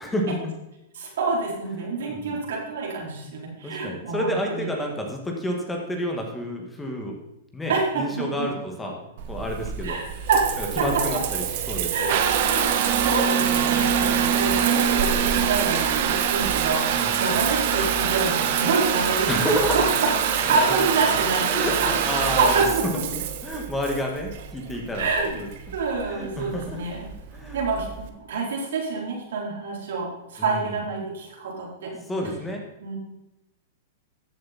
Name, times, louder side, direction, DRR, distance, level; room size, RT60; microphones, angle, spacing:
voice 1, 0.0-0.5 2.1-2.4 3.6-7.1 7.5-9.0 9.3-10.0 10.6-12.1 17.0-17.4 19.3-19.9 20.5-21.2 21.5-22.6 23.1-25.1 25.4-25.5 26.1-26.8 27.3-27.6 30.4-30.8 31.9-32.6, equal, 10° left, 1 dB, 1.9 m, -30 dB
voice 2, 0.9-4.7 7.7-8.5 9.8-10.0 10.3-10.5 10.8-11.2 11.9-19.8 20.4-21.7 22.1-22.8 24.9-25.4 25.7-27.1 27.5-31.9 32.8-33.0, right 4 dB, 80° right, -2 dB, 4.2 m, -27 dB
Water tap faucet / Bathtub (filling or washing) / Trickle dribble, 9.2-28.1, right 8 dB, 60° right, 1.3 m, -25 dB
14.0 x 7.7 x 4.3 m, 0.92 s
hypercardioid pair, 145°, 0 cm